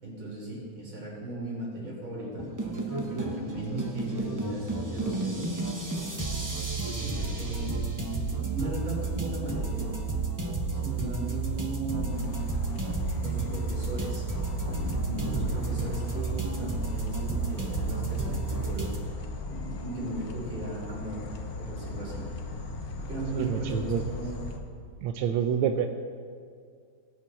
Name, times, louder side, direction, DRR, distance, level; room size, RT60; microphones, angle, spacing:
voice 1, 0.0-5.5 6.8-7.9 8.2-9.9 10.7-12.4 13.2-14.3 14.5-19.0 19.4-21.2 21.6-22.3 23.0-24.5, right 2 dB, 70° right, -4 dB, 4.3 m, -37 dB
sound 1, 2.4-19.0, right 3 dB, 15° right, 0.8 m, -32 dB
sound 2, 12.1-24.6, left 3 dB, 55° left, 1.3 m, -38 dB
voice 2, 23.4-24.0 25.0-25.9, right 8 dB, 90° right, 6 dB, 1.5 m, -27 dB
19.0 x 9.1 x 4.1 m, 2.1 s
omnidirectional pair, 2.3 m